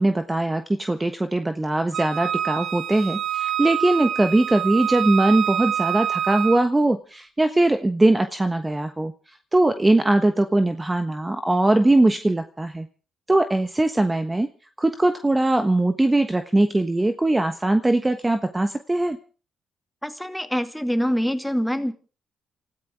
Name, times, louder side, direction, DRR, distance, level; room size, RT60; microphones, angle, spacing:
voice 1, 0.0-9.1 9.5-12.9 13.3-14.5 14.8-19.2, right 2 dB, 20° right, 8 dB, 1.3 m, -21 dB
Wind instrument woodwind instrument, 1.9-6.6, right 10 dB, 60° right, 1.5 m, -26 dB
voice 2, 20.0-21.9, equal, 5° left, 8 dB, 2.2 m, -25 dB
28.5 x 14.0 x 3.6 m, 0.38 s
supercardioid pair, 55°, 0 cm